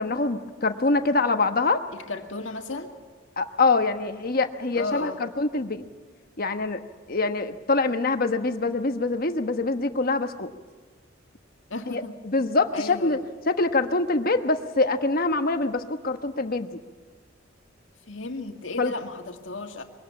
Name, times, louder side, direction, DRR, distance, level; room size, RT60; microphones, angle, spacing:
voice 1, 0.0-1.8 3.4-5.8 6.4-6.8 7.1-10.5 11.9-13.2 13.5-16.7 18.8-18.9, left 3 dB, 45° left, 8 dB, 1.2 m, -24 dB
voice 2, 1.9-2.9 4.7-5.2 11.7-12.2 12.7-13.2 18.1-19.8, left 3 dB, 70° left, 4 dB, 2.1 m, -34 dB
23.5 x 18.0 x 7.1 m, 1.5 s
head